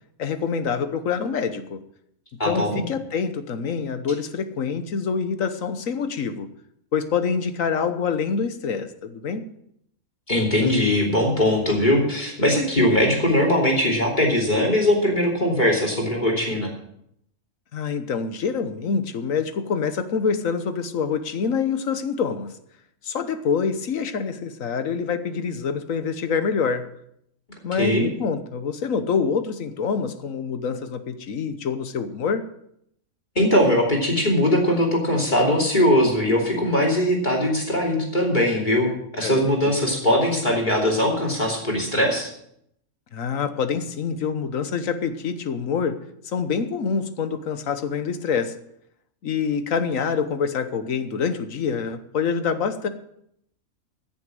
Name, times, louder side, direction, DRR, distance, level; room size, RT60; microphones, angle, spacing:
voice 1, 0.2-1.8 2.4-6.5 6.9-9.5 17.7-22.6 23.0-26.9 27.6-32.5 39.2-39.8 43.1-46.0 46.2-48.6 49.2-52.9, left 6 dB, 70° left, 10 dB, 1.4 m, -26 dB
voice 2, 2.4-2.8 10.3-16.7 27.8-28.1 33.3-42.3, left 1 dB, 30° left, 0 dB, 3.2 m, -20 dB
14.5 x 7.0 x 7.7 m, 0.73 s
omnidirectional pair, 1.5 m